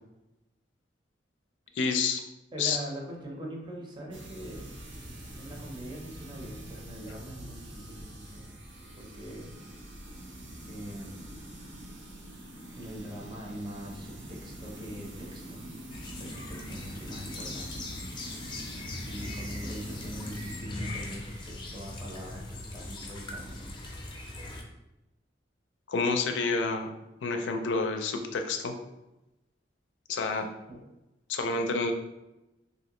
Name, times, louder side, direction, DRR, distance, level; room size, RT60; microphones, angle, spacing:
voice 1, 1.8-2.2 2.6-2.8 25.9-26.9 27.2-28.7 30.1-30.5 31.3-31.9, left 4 dB, 85° left, 5 dB, 0.4 m, -28 dB
voice 2, 2.5-4.7 5.4-8.6 9.0-9.6 10.6-11.3 12.7-15.6 16.2-17.8 19.0-23.8 30.3-30.8, equal, 25° right, -1 dB, 0.6 m, -42 dB
sound 1, 4.1-20.6, right 1 dB, 75° right, 0.7 m, -45 dB
sound 2, 15.9-24.6, left 2 dB, 25° left, 0.5 m, -40 dB
3.1 x 2.6 x 2.9 m, 0.97 s
head